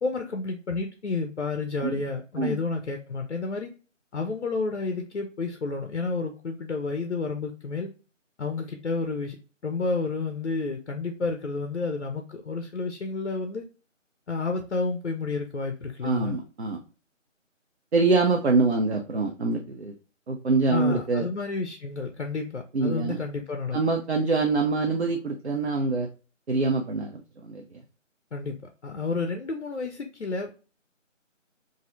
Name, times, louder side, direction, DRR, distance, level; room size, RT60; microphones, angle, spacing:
voice 1, 0.0-3.7 4.1-7.9 8.4-9.4 9.6-13.7 14.3-16.4 20.7-23.8 28.3-28.6 28.8-30.6, left 3 dB, 65° left, 4 dB, 0.5 m, -30 dB
voice 2, 16.0-16.8 17.9-19.9 20.3-21.3 22.7-23.2 23.7-26.1 26.5-27.8, right 3 dB, 55° right, 3 dB, 0.4 m, -25 dB
3.1 x 2.5 x 2.3 m, 0.35 s
figure-of-eight pair, 165°, 39 cm